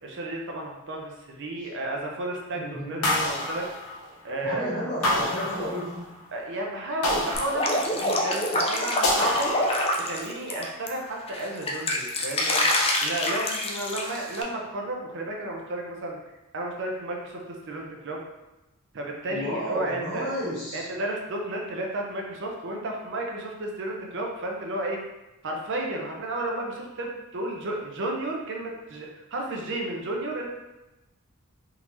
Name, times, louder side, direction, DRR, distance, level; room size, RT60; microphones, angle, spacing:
voice 1, 0.0-3.6 4.2-5.3 6.3-9.5 10.0-12.7 13.0-16.2 16.5-18.2 18.9-20.3 20.7-25.0 25.4-30.5, right 1 dB, 55° right, 0 dB, 0.6 m, -32 dB
voice 2, 2.5-3.1 4.4-6.1 14.1-14.2 19.3-20.9, equal, 50° left, -14 dB, 1.4 m, -32 dB
sound 1, 3.0-4.4 5.0-6.2 7.0-8.3 9.0-10.2, left 1 dB, 90° left, 0.8 m, -28 dB
Drip, 7.3-10.9 11.3-14.4, left 1 dB, 25° left, 0.4 m, -26 dB
3.6 x 2.7 x 3.0 m, 0.99 s
head